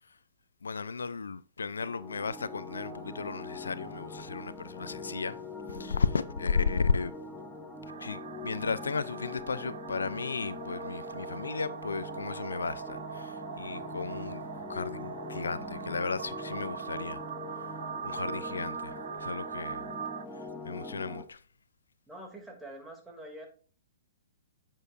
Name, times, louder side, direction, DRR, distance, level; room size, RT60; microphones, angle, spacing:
voice 1, 0.6-5.4 5.7-7.1 8.0-14.4 14.7-17.2 18.0-19.9 20.6-21.4, left 5 dB, 85° left, 0.5 m, -34 dB
sound 1, 1.8-21.2, left 2 dB, 10° left, 1.4 m, -43 dB
sound 2, 7.9-20.2, right 8 dB, 70° right, 0.4 m, -41 dB
voice 2, 18.2-18.6 22.1-23.5, right 1 dB, 10° right, 2.6 m, -46 dB
8.9 x 7.2 x 2.6 m
hypercardioid pair, 125°, 0 cm